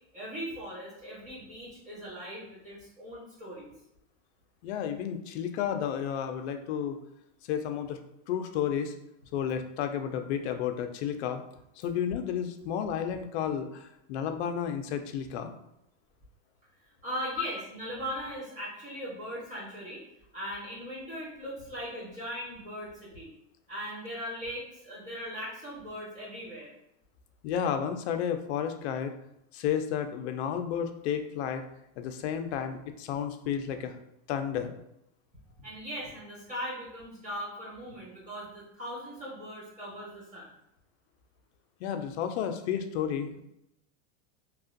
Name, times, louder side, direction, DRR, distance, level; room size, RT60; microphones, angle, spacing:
voice 1, 0.1-3.7 17.0-20.0 20.3-23.3 23.7-26.7 35.6-40.5, equal, 20° right, -7 dB, 1.2 m, -39 dB
voice 2, 4.6-7.0 7.5-8.0 8.3-8.9 9.3-11.4 11.8-15.5 17.4-17.5 27.4-29.1 29.5-31.6 32.0-34.0 34.3-34.8 41.8-43.4, left 8 dB, 60° left, 7 dB, 0.5 m, -32 dB
2.9 x 2.4 x 2.5 m, 0.80 s
supercardioid pair, 150°, 37 cm